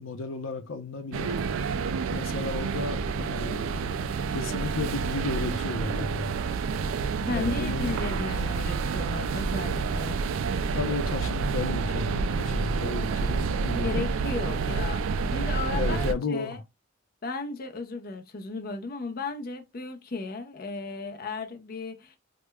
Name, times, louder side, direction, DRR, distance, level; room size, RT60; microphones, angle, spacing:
voice 1, 0.0-1.3 2.1-3.7 4.3-6.4 7.3-8.6 10.7-14.0 14.5-14.8 15.7-16.6, left 3 dB, 85° left, 0.6 m, -33 dB
sound 1, 1.1-16.1, right 5 dB, 85° right, 0.3 m, -29 dB
voice 2, 7.3-10.2 13.8-16.6 17.2-22.2, left 3 dB, 45° left, 0.5 m, -35 dB
4.9 x 2.1 x 2.2 m
head